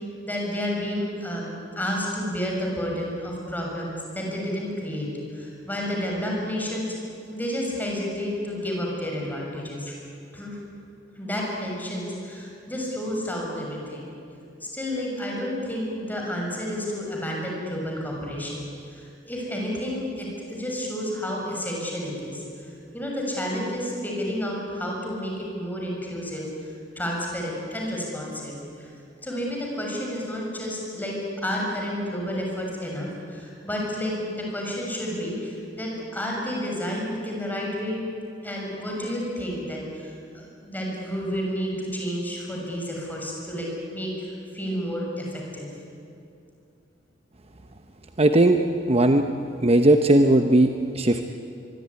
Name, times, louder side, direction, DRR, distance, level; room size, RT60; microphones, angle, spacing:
voice 1, 0.2-5.1 5.3-6.9 7.3-10.0 10.3-10.5 11.2-14.0 14.6-22.4 22.9-26.7 26.9-28.9 29.2-31.1 31.4-38.0 38.4-44.1 44.5-45.7, equal, 10° left, -2 dB, 6.8 m, -30 dB
voice 2, 48.2-48.6 48.9-49.3 49.6-51.3, right 1 dB, 35° right, 6 dB, 1.0 m, -18 dB
24.0 x 23.5 x 9.7 m, 2.5 s
head